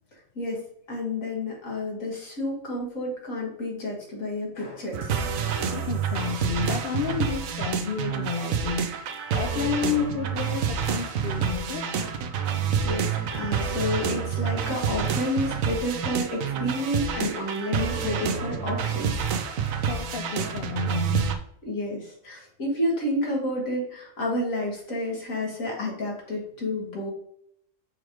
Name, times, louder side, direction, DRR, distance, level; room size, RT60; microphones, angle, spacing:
voice 1, 0.9-5.1 5.4-5.8 12.8-19.3 21.7-27.1, left 1 dB, 90° left, 2.3 m, -30 dB
sound 1, 4.9-21.4, right 7 dB, 85° right, 1.1 m, -28 dB
voice 2, 5.7-11.9 19.9-21.4, left 6 dB, 50° left, 0.7 m, -31 dB
6.1 x 3.1 x 5.0 m
omnidirectional pair, 1.4 m